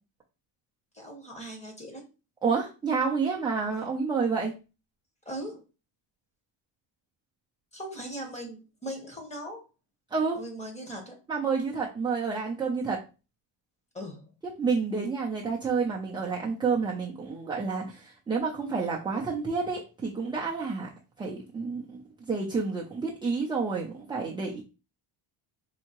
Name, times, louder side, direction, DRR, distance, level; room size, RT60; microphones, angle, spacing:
voice 1, 0.9-2.0 5.3-5.6 7.7-9.6 10.3-11.1 13.9-14.2, right 1 dB, 15° left, 2 dB, 1.0 m, -39 dB
voice 2, 2.4-4.5 10.1-10.4 11.3-13.0 14.6-20.9 21.2-22.0 22.3-24.6, right 5 dB, 10° right, -3 dB, 0.3 m, -29 dB
4.4 x 2.8 x 2.9 m, 0.31 s
cardioid pair, 160°, 48 cm